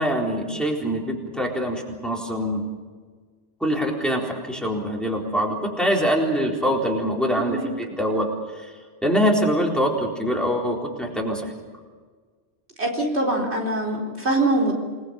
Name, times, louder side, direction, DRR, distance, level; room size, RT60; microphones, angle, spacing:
voice 1, 0.0-2.7 3.6-8.3 8.6-8.7 9.0-11.5, equal, ahead, -1 dB, 4.0 m, -24 dB
voice 2, 7.4-7.7 12.8-14.7, right 2 dB, 65° right, 0 dB, 4.4 m, -23 dB
28.5 x 20.0 x 7.1 m, 1.5 s
omnidirectional pair, 1.2 m